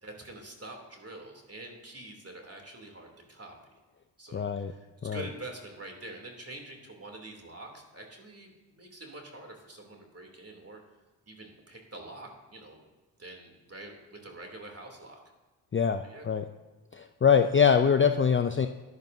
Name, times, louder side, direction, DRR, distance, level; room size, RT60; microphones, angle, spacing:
voice 1, 0.0-3.5 4.2-10.8 11.3-12.8 13.2-15.2 16.0-16.3, right 2 dB, 30° right, 2 dB, 3.0 m, -46 dB
voice 2, 4.3-4.7 5.0-5.2 15.7-16.4 16.9-18.7, left 7 dB, 25° left, 8 dB, 0.5 m, -24 dB
14.5 x 10.5 x 2.7 m, 1.2 s
supercardioid pair, 45°, 48 cm